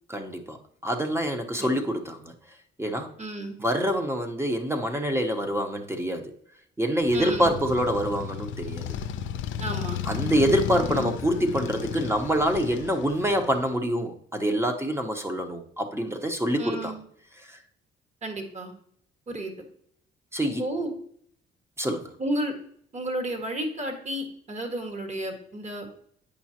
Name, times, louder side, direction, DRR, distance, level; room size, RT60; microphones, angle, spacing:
voice 1, 0.1-2.3 2.8-3.1 3.6-6.3 6.8-9.0 10.1-16.9 17.4-17.6 20.3-20.6 21.8-22.1, equal, 15° right, 5 dB, 1.0 m, -26 dB
voice 2, 3.2-3.6 7.1-7.5 9.6-10.0 16.6-17.0 18.2-18.7 19.3-19.5 20.4-20.9 22.2-22.5 22.9-25.9, right 1 dB, 35° right, 4 dB, 1.6 m, -32 dB
Motorcycle, 7.0-13.7, left 8 dB, 75° left, 0.5 m, -34 dB
8.6 x 5.5 x 2.8 m, 0.65 s
cardioid pair, 90°, 20 cm